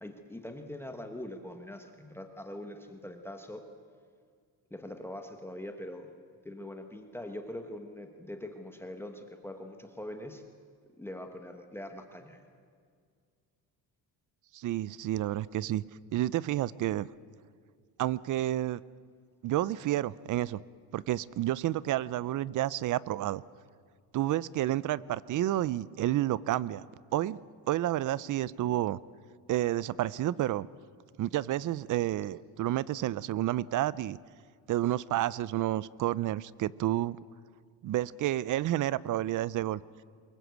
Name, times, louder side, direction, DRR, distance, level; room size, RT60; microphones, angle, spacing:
voice 1, 0.0-3.6 4.7-6.1 6.4-10.4 11.0-12.5, left 1 dB, 5° left, 5 dB, 1.2 m, -43 dB
voice 2, 14.5-15.8 16.1-17.1 18.0-18.8 19.4-20.6 20.9-23.4 24.1-26.9 27.1-27.4 27.7-29.0 29.5-30.7 31.2-34.2 34.7-37.2 37.8-39.8, right 14 dB, 50° right, 21 dB, 0.5 m, -30 dB
24.0 x 21.5 x 8.2 m, 2.1 s
cardioid pair, 180°, 39 cm